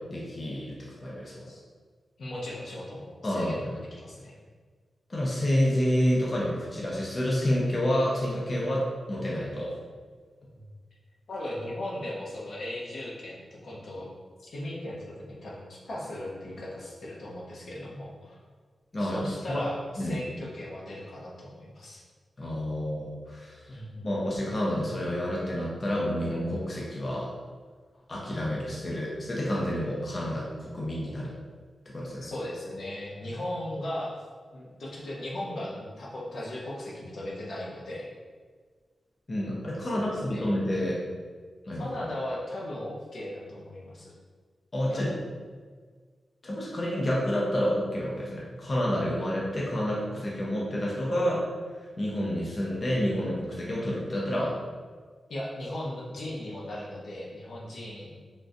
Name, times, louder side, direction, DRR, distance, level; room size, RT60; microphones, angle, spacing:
voice 1, 0.1-1.5 3.2-3.6 5.1-9.7 18.9-19.6 20.0-20.2 22.4-23.6 24.0-27.3 28.1-31.3 31.9-32.3 39.3-41.0 41.7-41.9 44.7-45.1 46.4-51.5 51.8-54.5, equal, 35° left, -5 dB, 0.6 m, -29 dB
voice 2, 2.2-4.4 10.5-10.6 11.3-14.1 14.4-18.4 19.0-22.0 23.7-24.1 32.2-34.2 34.5-38.1 39.9-40.5 41.8-44.1 44.9-45.1 55.3-58.2, left 1 dB, 70° left, -5 dB, 0.7 m, -37 dB
3.6 x 2.4 x 2.6 m, 1.6 s
wide cardioid pair, 125°, 0 cm